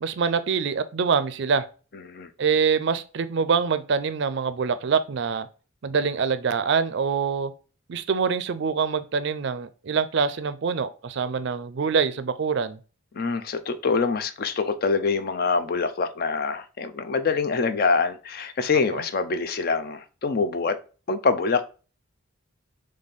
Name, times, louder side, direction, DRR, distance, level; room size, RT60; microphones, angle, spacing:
voice 1, 0.0-1.6 2.4-5.5 5.8-7.5 7.9-12.8 18.9-19.0, right 5 dB, 60° right, 0.4 m, -25 dB
voice 2, 13.1-20.8 21.1-21.6, left 4 dB, 45° left, 0.4 m, -25 dB
4.1 x 3.2 x 3.5 m
head